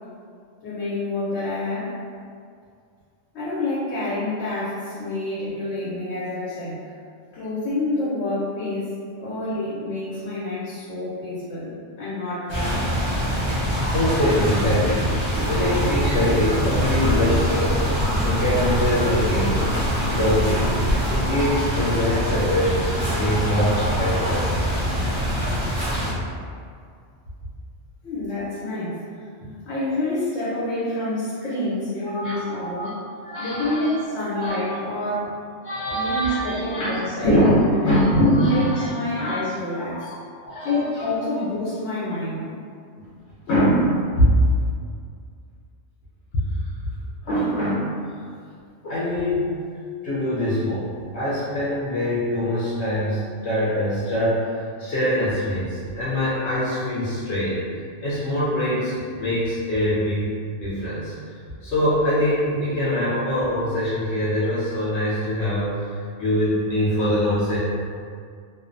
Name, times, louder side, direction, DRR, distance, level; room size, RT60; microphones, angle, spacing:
voice 1, 0.6-1.9 3.3-6.8 7.3-8.9 9.2-11.7 12.0-12.8 28.0-29.0 29.4-33.0 33.4-35.3 35.9-38.0 38.5-40.1 40.6-42.5, left 2 dB, 90° left, -9 dB, 1.0 m, -28 dB
sound 1, 12.5-26.1, equal, 25° right, 0.5 m, -24 dB
voice 2, 13.8-15.1 15.5-17.8 18.2-19.7 20.1-20.8 21.1-24.5 32.0-32.9 33.2-33.9 34.3-34.5 35.6-36.9 37.2-38.9 39.2-39.4 39.9-40.1 40.4-41.1 43.5-44.4 46.3-46.4 47.2-48.0 48.8-49.6 50.0-57.6 58.0-60.3 60.6-61.4 61.6-67.6, equal, 65° left, -9 dB, 0.8 m, -23 dB
sound 2, 15.4-21.2, equal, 90° right, 1.0 m, -29 dB
2.5 x 2.0 x 2.5 m, 2.2 s
omnidirectional pair, 1.3 m